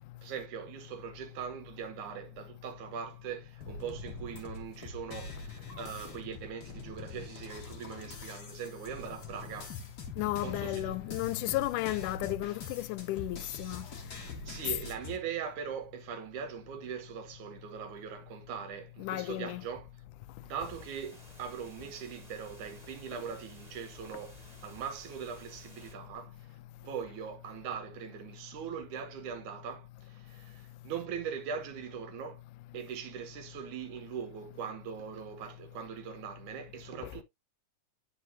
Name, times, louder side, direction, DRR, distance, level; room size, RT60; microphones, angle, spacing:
voice 1, 0.2-9.8 10.4-11.0 14.1-19.9 20.4-26.4 26.8-32.4 32.7-37.2, right 7 dB, 75° right, 2.6 m, -41 dB
sound 1, 3.6-15.2, left 3 dB, 40° left, 1.7 m, -44 dB
voice 2, 10.2-13.9 19.0-19.6, left 17 dB, 85° left, 2.1 m, -33 dB
sound 2, 20.6-25.9, right 1 dB, 15° right, 2.0 m, -55 dB
9.7 x 5.2 x 2.6 m
omnidirectional pair, 3.6 m